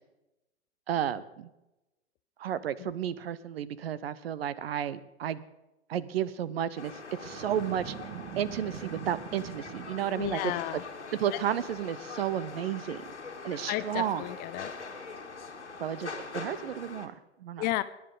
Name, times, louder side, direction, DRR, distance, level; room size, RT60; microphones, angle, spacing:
voice 1, 0.9-1.5 2.4-5.4 5.9-6.9 7.2-7.9 8.4-10.4 10.7-10.8 11.2-13.0 13.4-14.2 15.8-17.6, right 10 dB, 60° right, 18 dB, 0.9 m, -32 dB
sound 1, 6.8-17.1, left 4 dB, 85° left, 1.8 m, -43 dB
Boom, 7.2-10.4, right 9 dB, 40° right, 1.4 m, -43 dB
voice 2, 10.2-10.8 11.3-11.4 13.7-14.7 17.6-17.8, left 16 dB, 25° left, 14 dB, 0.6 m, -33 dB
21.5 x 10.5 x 3.9 m, 0.97 s
figure-of-eight pair, 105°, 34 cm